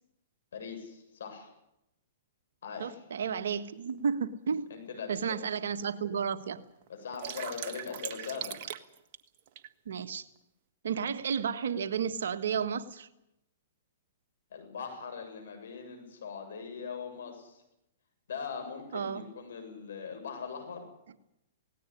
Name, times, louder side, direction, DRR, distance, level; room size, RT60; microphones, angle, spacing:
voice 1, 0.5-1.5 2.6-3.0 4.7-5.4 6.9-8.6 14.5-17.6 18.3-20.8, left 6 dB, 70° left, 5 dB, 7.6 m, -41 dB
voice 2, 2.8-4.7 5.1-6.6 9.8-10.2 10.8-13.1 18.9-19.2, right 6 dB, 70° right, 9 dB, 1.6 m, -32 dB
sound 1, 3.9-4.0 4.7-4.8 5.2-5.3 5.6-6.2 6.5-9.7, right 10 dB, 45° right, 1.4 m, -40 dB
18.0 x 17.5 x 9.9 m, 0.86 s
hypercardioid pair, 125°, 0 cm